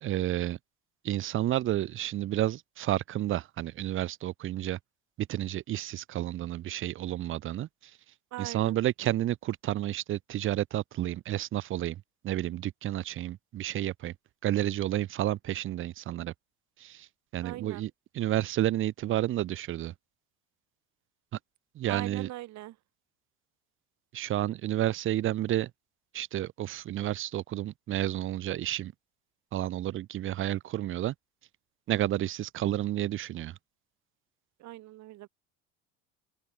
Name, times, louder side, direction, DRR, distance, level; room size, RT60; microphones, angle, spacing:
voice 1, 0.0-0.6 1.0-4.8 5.2-7.7 8.4-14.1 14.4-16.3 16.8-17.1 17.3-17.9 18.1-19.9 21.8-22.3 24.1-25.7 26.1-28.9 29.5-31.1 31.9-33.5, right 13 dB, 40° right, 0.6 m, -31 dB
voice 2, 8.3-8.8 17.4-17.9 21.9-22.8 34.6-35.3, right 16 dB, 60° right, 4.0 m, -41 dB
open air
supercardioid pair, 105°, 31 cm